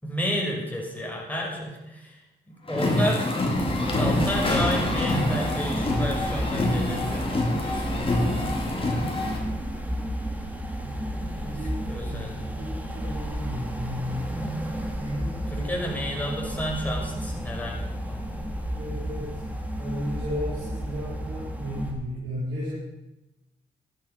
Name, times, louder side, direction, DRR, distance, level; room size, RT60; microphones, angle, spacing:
voice 1, 0.0-3.4 4.0-8.1 11.1-11.6 11.9-12.8 14.3-14.9 15.5-18.5, equal, 10° left, -2 dB, 5.7 m, -32 dB
sound 1, 2.7-9.4, left 1 dB, 30° left, 3.8 m, -26 dB
sound 2, 3.5-21.9, equal, 10° right, 3.2 m, -32 dB
voice 2, 11.4-14.3 14.9-16.1 18.7-19.4 19.8-22.7, equal, 90° right, -8 dB, 4.3 m, -34 dB
12.5 x 10.5 x 5.9 m, 0.98 s
supercardioid pair, 60°, 20 cm